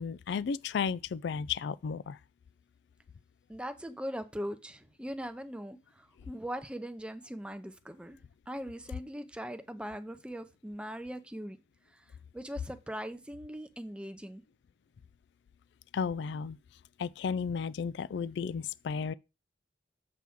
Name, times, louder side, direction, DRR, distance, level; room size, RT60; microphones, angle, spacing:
voice 1, 0.0-2.2 15.9-16.6 17.0-19.1, left 6 dB, 65° left, 0.3 m, -33 dB
voice 2, 3.5-8.2 8.5-11.6 12.3-14.4, equal, 5° right, 0.6 m, -40 dB
7.4 x 5.8 x 3.6 m
head